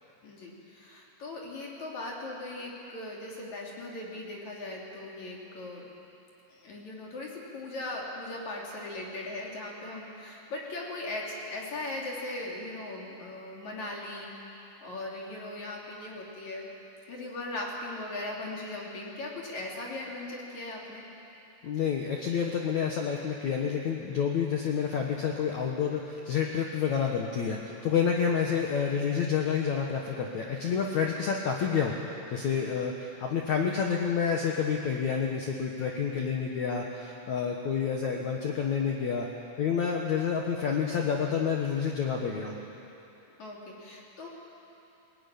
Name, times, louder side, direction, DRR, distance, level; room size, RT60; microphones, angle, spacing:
voice 1, 0.2-5.9 6.5-16.7 17.1-21.1 43.4-44.3, left 2 dB, 40° left, -2 dB, 3.8 m, -39 dB
voice 2, 21.6-31.9 32.3-39.3 39.6-42.5, left 7 dB, 85° left, 0 dB, 1.6 m, -29 dB
21.5 x 19.0 x 9.9 m, 2.9 s
omnidirectional pair, 5.5 m